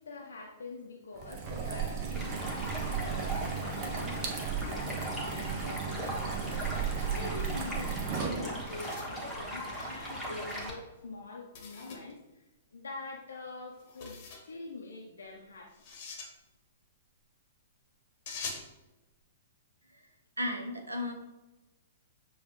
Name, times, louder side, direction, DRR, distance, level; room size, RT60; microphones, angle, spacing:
voice 1, 0.0-12.4 12.7-15.7, left 3 dB, 70° left, 0 dB, 0.5 m, -45 dB
sound 1, 1.1-8.8, right 6 dB, 35° right, 0.7 m, -35 dB
Stream, 2.1-10.7, equal, 5° right, 1.2 m, -39 dB
sound 2, 8.5-10.1 11.5-12.1 13.8-14.5 15.7-16.3 18.3-18.7, left 4 dB, 45° left, 0.9 m, -44 dB
voice 2, 20.4-21.1, left 1 dB, 85° right, 3 dB, 0.6 m, -34 dB
6.7 x 2.3 x 3.0 m, 1.0 s
figure-of-eight pair, 110°, 0 cm